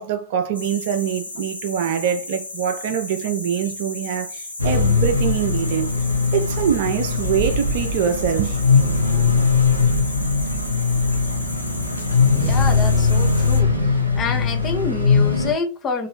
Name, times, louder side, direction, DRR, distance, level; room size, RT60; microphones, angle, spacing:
voice 1, 0.0-5.9 6.3-8.6, right 8 dB, 50° right, 0.6 m, -24 dB
sound 1, 0.5-13.6, left 2 dB, 85° left, 0.8 m, -35 dB
sound 2, 4.6-15.5, left 4 dB, 85° right, 0.8 m, -20 dB
voice 2, 12.3-13.7 14.2-16.1, left 4 dB, 25° left, 1.0 m, -27 dB
3.8 x 2.6 x 3.3 m
figure-of-eight pair, 90°, 0 cm